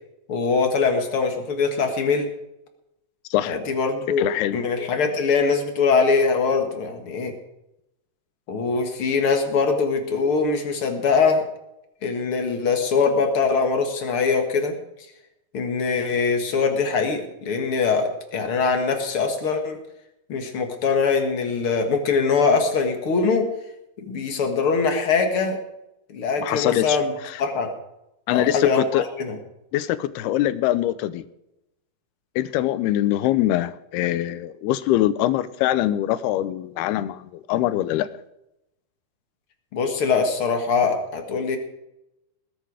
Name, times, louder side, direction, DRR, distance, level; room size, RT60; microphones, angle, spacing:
voice 1, 0.3-2.3 3.4-4.3 4.5-7.4 8.5-11.4 12.0-14.8 15.5-19.8 20.3-23.5 24.0-25.6 26.1-27.1 27.4-27.7 28.3-29.4 39.7-41.6, left 5 dB, 50° left, 5 dB, 1.9 m, -22 dB
voice 2, 4.2-4.6 26.4-27.0 27.2-27.4 28.3-29.1 29.7-31.3 32.4-38.1, left 13 dB, 90° left, 15 dB, 2.7 m, -23 dB
20.0 x 10.0 x 4.9 m, 0.87 s
omnidirectional pair, 4.5 m